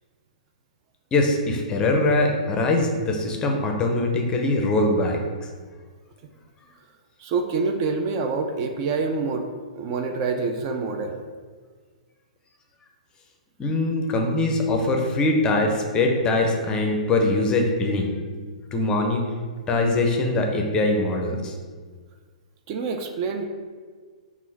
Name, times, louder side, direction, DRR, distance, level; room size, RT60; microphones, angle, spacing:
voice 1, 1.1-5.5 13.6-18.1 18.7-19.2 19.7-21.5, left 2 dB, 20° left, 2 dB, 0.5 m, -22 dB
voice 2, 7.2-9.5 9.7-11.2 22.7-23.5, right 4 dB, 40° right, 5 dB, 0.4 m, -26 dB
3.7 x 2.4 x 4.0 m, 1.5 s
hypercardioid pair, 120°, 4 cm